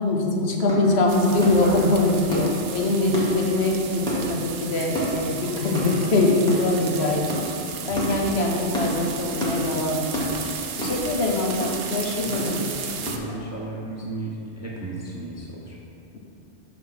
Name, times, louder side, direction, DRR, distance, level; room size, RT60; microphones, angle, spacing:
voice 1, 0.0-7.4 7.9-10.3 10.8-12.7, left 2 dB, 65° left, 0 dB, 1.0 m, -23 dB
sound 1, 0.6-13.4, equal, 5° left, 1.2 m, -32 dB
sound 2, 1.1-13.2, right 6 dB, 65° right, 0.8 m, -35 dB
voice 2, 12.2-12.7 13.0-15.7, right 2 dB, 20° right, -4 dB, 0.5 m, -34 dB
6.0 x 4.2 x 5.5 m, 2.7 s
omnidirectional pair, 1.2 m